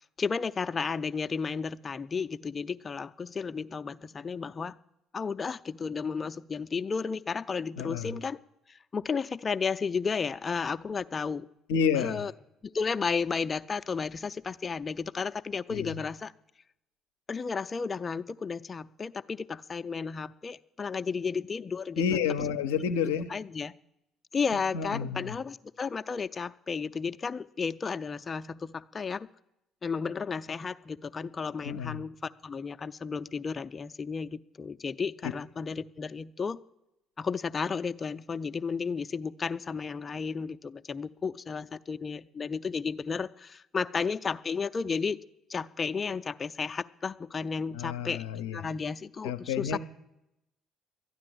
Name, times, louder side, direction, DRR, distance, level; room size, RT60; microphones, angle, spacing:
voice 1, 0.2-4.8 5.1-8.4 8.7-11.5 11.9-12.3 12.6-16.3 17.3-22.0 23.3-23.7 24.3-29.3 29.8-36.6 37.2-45.2 45.5-48.2 48.5-49.8, left 5 dB, 35° left, 11 dB, 0.5 m, -33 dB
voice 2, 7.8-8.1 11.7-12.2 15.7-15.9 22.0-23.3 24.5-25.4 31.6-32.0 35.2-35.3 47.7-48.6 49.2-49.8, left 7 dB, 85° left, 8 dB, 0.6 m, -30 dB
13.0 x 9.8 x 7.8 m, 0.87 s
hypercardioid pair, 60°, 0 cm